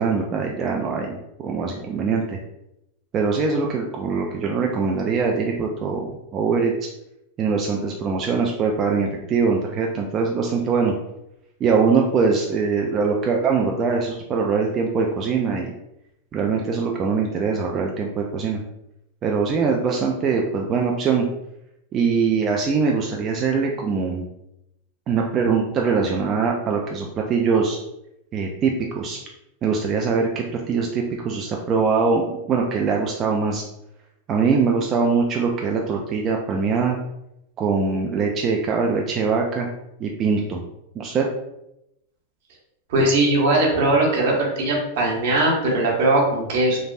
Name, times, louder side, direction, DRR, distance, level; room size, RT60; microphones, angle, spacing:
voice 1, 0.0-2.4 3.1-6.7 7.4-10.9 11.6-15.7 16.3-18.6 19.2-21.3 21.9-24.3 25.1-27.8 28.3-29.2 29.6-33.6 34.3-37.0 37.6-39.7 40.0-40.6 41.0-41.3, right 5 dB, 30° right, 0 dB, 0.3 m, -22 dB
voice 2, 42.9-46.8, right 2 dB, 65° right, -1 dB, 0.9 m, -20 dB
3.3 x 2.0 x 2.5 m, 0.85 s
hypercardioid pair, 125°, 0 cm